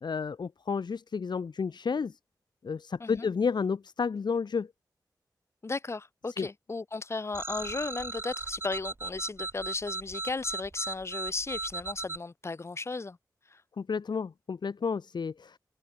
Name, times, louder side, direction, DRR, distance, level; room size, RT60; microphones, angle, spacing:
voice 1, 0.0-2.2 2.6-4.7 6.4-6.5 13.8-15.6, left 5 dB, 70° left, 0.8 m, -31 dB
voice 2, 5.6-13.2 13.5-13.6, left 3 dB, 35° left, 0.5 m, -35 dB
sound 1, 7.3-12.2, right 2 dB, 30° right, 0.8 m, -37 dB
open air
wide cardioid pair, 85°, 8 cm